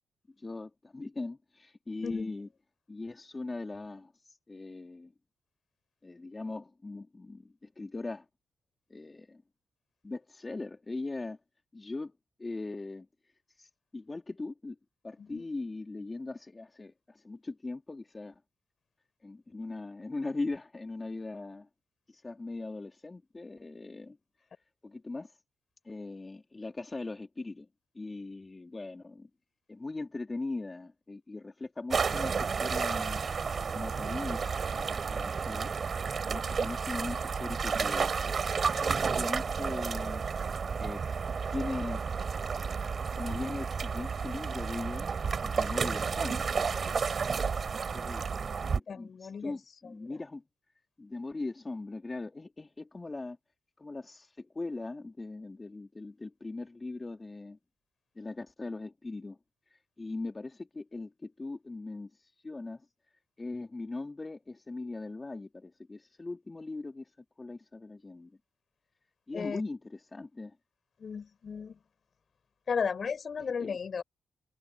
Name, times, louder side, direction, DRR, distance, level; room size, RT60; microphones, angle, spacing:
voice 1, 0.4-2.5 2.9-5.1 6.0-8.2 8.9-9.4 10.0-11.4 11.7-12.1 12.4-13.1 13.6-14.8 15.0-18.4 19.2-21.7 22.1-24.2 24.8-25.4 25.8-27.7 27.9-29.3 29.7-33.2 33.7-35.7 36.3-38.1 38.8-40.2 40.8-41.0 41.5-42.0 43.1-45.1 45.4-46.7 47.9-50.4 51.0-53.4 53.8-57.6 58.1-59.4 59.7-62.8 63.4-67.1 67.4-68.4 69.3-69.8 70.1-70.6 73.4-73.7, left 3 dB, 30° left, 3.2 m, -40 dB
voice 2, 2.0-2.3 15.2-15.5 48.9-49.6 49.8-50.2 69.3-69.6 71.0-71.8 72.7-74.0, left 6 dB, 55° left, 5.1 m, -35 dB
sound 1, 31.9-48.8, right 5 dB, 55° right, 4.7 m, -31 dB
supercardioid pair, 45°, 0 cm